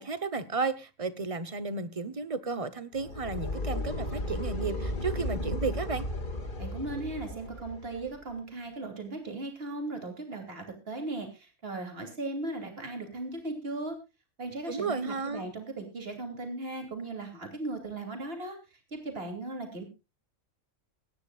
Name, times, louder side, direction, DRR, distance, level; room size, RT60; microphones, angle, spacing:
voice 1, 0.0-6.1 14.7-15.4, right 4 dB, 25° right, 1.2 m, -33 dB
sound 1, 2.9-8.1, left 1 dB, 40° left, 2.2 m, -35 dB
voice 2, 6.6-14.0 14.4-18.6 18.9-19.8, right 2 dB, 45° right, 3.3 m, -37 dB
23.5 x 10.0 x 2.4 m
omnidirectional pair, 1.4 m